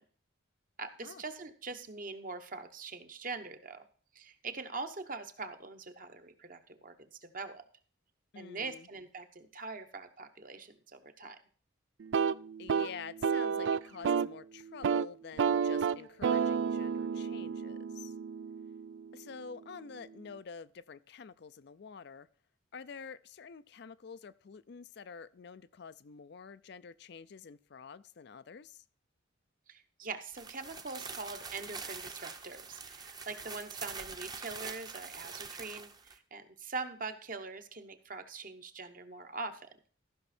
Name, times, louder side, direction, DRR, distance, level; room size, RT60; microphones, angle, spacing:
voice 1, 0.8-3.8 4.1-7.6 8.3-11.4 29.7-39.7, right 4 dB, 45° right, 7 dB, 1.0 m, -43 dB
voice 2, 8.3-8.9 12.6-18.1 19.1-22.3 22.7-28.8, left 5 dB, 55° left, 15 dB, 0.4 m, -48 dB
sound 1, 12.0-14.4 14.7-15.1 15.4-19.2, right 6 dB, 65° right, 0.4 m, -31 dB
sound 2, 30.3-36.2, right 5 dB, 20° right, 0.8 m, -44 dB
14.0 x 6.0 x 4.3 m, 0.43 s
head